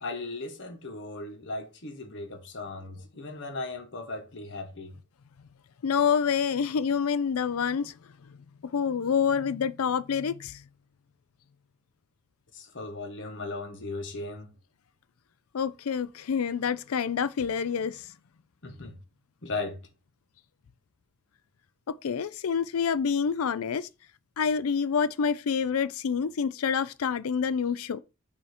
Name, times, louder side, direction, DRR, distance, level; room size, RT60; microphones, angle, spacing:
voice 1, 0.0-4.9 12.5-14.5 18.6-18.9 19.4-19.8, left 3 dB, 60° left, 1.3 m, -37 dB
voice 2, 5.8-7.9 8.7-10.6 15.5-18.0 21.9-23.9 24.4-28.0, left 6 dB, 90° left, 0.5 m, -27 dB
6.8 x 2.9 x 5.0 m
head